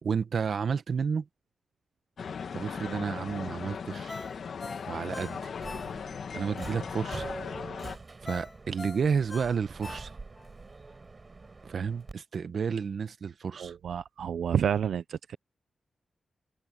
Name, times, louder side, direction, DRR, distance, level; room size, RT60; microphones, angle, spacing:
voice 1, 0.0-1.3 2.5-4.3 4.9-5.5 6.3-7.3 8.2-10.1 11.6-13.7, right 6 dB, 65° right, 1.1 m, -31 dB
sound 1, 2.2-8.0, left 6 dB, 70° left, 1.6 m, -38 dB
Ringtone, 4.1-6.3 6.7-6.8 8.3-10.5 10.9-11.0, left 3 dB, 30° left, 5.5 m, -43 dB
Subway metro underground, 5.5-12.1, right 3 dB, 35° right, 7.9 m, -45 dB
voice 2, 13.6-15.4, right 8 dB, 90° right, 0.5 m, -29 dB
wide cardioid pair, 95°, 0 cm